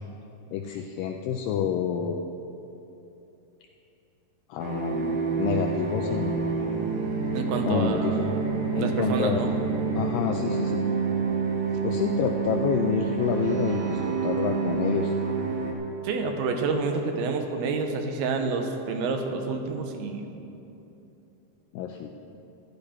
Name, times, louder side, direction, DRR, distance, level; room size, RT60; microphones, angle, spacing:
voice 1, 0.5-2.2 4.5-6.4 7.6-8.2 8.7-9.5 9.9-10.8 11.8-15.1 21.7-22.1, left 8 dB, 80° left, 3 dB, 2.1 m, -28 dB
sound 1, 4.6-15.7, right 5 dB, 65° right, 1.5 m, -28 dB
voice 2, 7.3-8.4 8.7-9.5 16.0-20.3, right 4 dB, 85° right, 4 dB, 2.8 m, -28 dB
14.0 x 11.5 x 4.3 m, 2.9 s
omnidirectional pair, 4.4 m